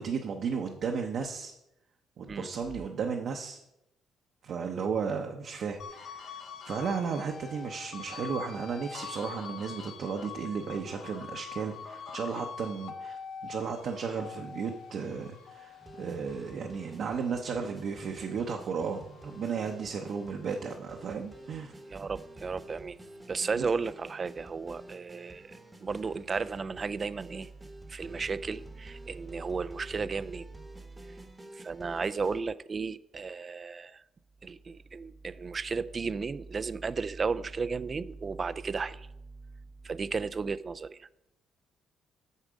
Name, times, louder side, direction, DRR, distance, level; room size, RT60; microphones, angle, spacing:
voice 1, 0.0-1.5 2.2-3.6 4.4-21.7 23.5-23.7, right 6 dB, 55° right, 2 dB, 0.8 m, -34 dB
sound 1, 5.8-18.4 18.8-20.5, left 6 dB, 60° left, 0.9 m, -44 dB
sound 2, 15.8-32.4, right 1 dB, 15° right, 0.9 m, -50 dB
voice 2, 21.9-23.0 23.3-27.5 27.9-30.5 31.0-31.1 31.5-34.0 34.4-39.1 39.8-41.1, right 4 dB, 30° right, 15 dB, 0.3 m, -34 dB
8.2 x 6.4 x 5.1 m, 0.84 s
cardioid pair, 125°, 0 cm